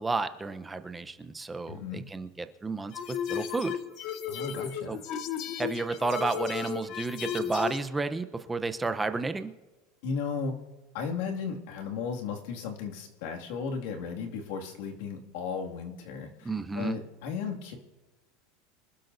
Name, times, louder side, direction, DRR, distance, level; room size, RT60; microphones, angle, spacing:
voice 1, 0.0-3.8 4.9-5.0 5.6-9.5 16.4-17.0, right 3 dB, 10° right, 9 dB, 0.8 m, -32 dB
voice 2, 1.7-2.0 4.3-5.0 10.0-10.6 10.9-16.5 16.8-17.8, left 5 dB, 75° left, 1 dB, 2.3 m, -35 dB
sound 1, 2.9-7.8, left 9 dB, 50° left, 1.1 m, -34 dB
25.0 x 12.0 x 2.7 m, 1.2 s
supercardioid pair, 125°, 0 cm